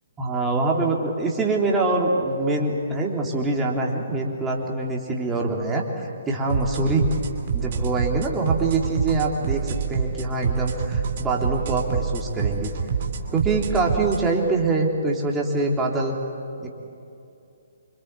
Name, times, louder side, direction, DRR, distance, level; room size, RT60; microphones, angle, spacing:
voice 1, 0.2-7.1 7.5-12.7 13.3-16.1 16.6-16.7, right 3 dB, 10° right, -1 dB, 3.4 m, -24 dB
sound 1, 6.5-14.2, right 6 dB, 40° right, 2.8 m, -27 dB
27.0 x 25.5 x 8.4 m, 2.6 s
figure-of-eight pair, 130°, 0 cm